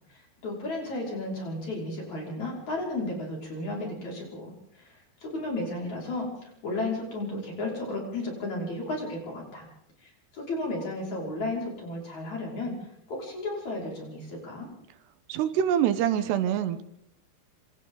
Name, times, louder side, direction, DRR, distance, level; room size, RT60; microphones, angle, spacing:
voice 1, 0.1-9.7 10.0-12.7 13.1-14.7, left 2 dB, 40° left, -2 dB, 6.6 m, -34 dB
voice 2, 15.3-16.8, right 10 dB, 80° right, 11 dB, 3.0 m, -25 dB
26.5 x 26.5 x 3.9 m, 0.74 s
omnidirectional pair, 5.0 m